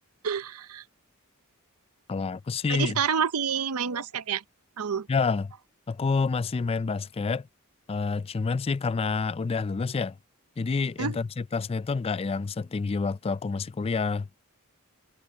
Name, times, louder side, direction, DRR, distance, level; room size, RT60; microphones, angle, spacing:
voice 1, 0.2-0.8 2.7-4.4 4.8-5.1 11.0-11.2, right 7 dB, 70° right, 0.7 m, -28 dB
voice 2, 2.1-3.0 5.1-5.5 5.9-7.5 7.9-10.2 10.6-14.3, left 4 dB, 25° left, 0.3 m, -28 dB
head